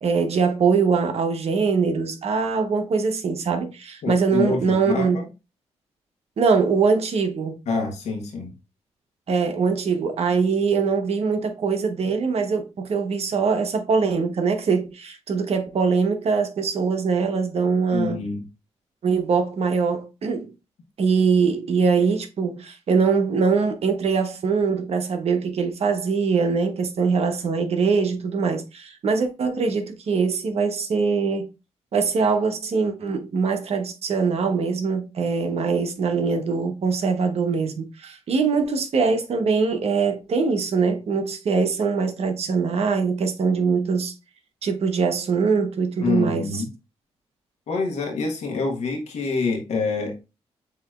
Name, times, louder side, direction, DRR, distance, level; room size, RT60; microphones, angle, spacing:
voice 1, 0.0-5.2 6.4-7.6 9.3-18.2 19.0-20.5 21.0-31.5 31.9-44.1 44.6-46.6, right 5 dB, 60° right, 1.0 m, -22 dB
voice 2, 4.0-5.2 7.7-8.5 17.9-18.4 46.0-46.7 47.7-50.2, left 4 dB, 75° left, 1.2 m, -26 dB
6.7 x 2.9 x 2.4 m
cardioid pair, 70°, 12 cm